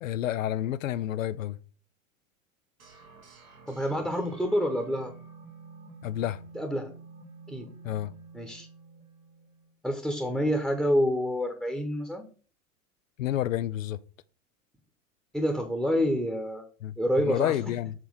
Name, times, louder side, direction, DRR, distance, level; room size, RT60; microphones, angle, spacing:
voice 1, 0.0-1.6 6.0-6.4 7.8-8.1 13.2-14.0 16.8-17.9, left 12 dB, 70° left, 0.6 m, -30 dB
sound 1, 2.8-9.7, right 4 dB, 80° right, 1.8 m, -50 dB
voice 2, 3.7-5.1 6.5-6.9 7.5-7.7 8.3-8.7 9.8-12.2 15.3-16.6 17.0-17.5, equal, ahead, 1.1 m, -27 dB
7.5 x 3.3 x 6.3 m
figure-of-eight pair, 95°, 41 cm